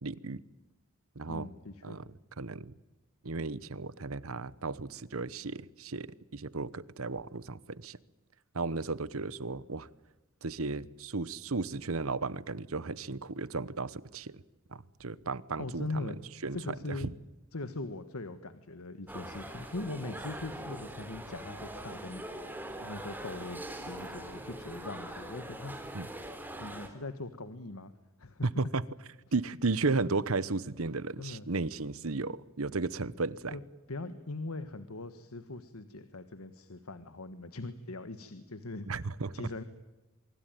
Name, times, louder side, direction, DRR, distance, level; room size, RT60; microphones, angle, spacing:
voice 1, 0.0-0.4 1.1-1.5 1.8-2.0 2.4-2.7 3.2-8.0 8.5-9.9 10.4-14.4 14.7-16.1 16.4-16.6 16.9-17.1 25.9-26.1 28.6-28.8 29.3-33.5 38.9-39.3, right 3 dB, 75° right, 19 dB, 1.1 m, -34 dB
voice 2, 1.3-2.1 15.6-16.2 16.5-17.2 17.5-22.2 22.8-25.7 26.6-27.9 28.2-28.5 31.2-31.5 33.5-33.6 33.9-38.9 39.3-39.6, left 2 dB, 85° left, 11 dB, 1.5 m, -41 dB
sound 1, 19.1-26.9, right 1 dB, 10° right, 3.9 m, -42 dB
25.0 x 23.5 x 9.2 m, 1.1 s
head